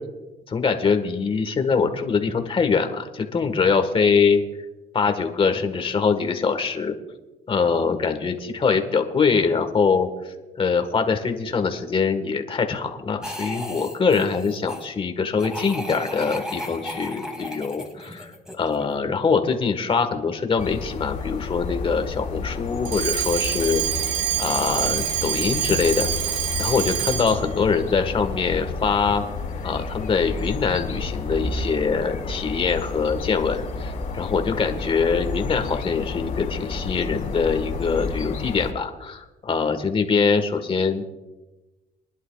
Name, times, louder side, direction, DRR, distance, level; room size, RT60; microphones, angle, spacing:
voice 1, 0.5-4.4 4.9-6.9 7.5-23.8 24.4-26.1 26.6-29.2 29.6-41.0, left 5 dB, 30° left, 7 dB, 1.6 m, -23 dB
sound 1, 13.2-14.9 15.4-18.9, left 1 dB, 5° right, 2.6 m, -35 dB
sound 2, 20.6-38.7, left 4 dB, 50° left, 2.5 m, -31 dB
Alarm, 22.8-27.5, right 11 dB, 85° right, 0.9 m, -26 dB
24.0 x 11.0 x 2.4 m, 1.1 s
cardioid pair, 110°, 17 cm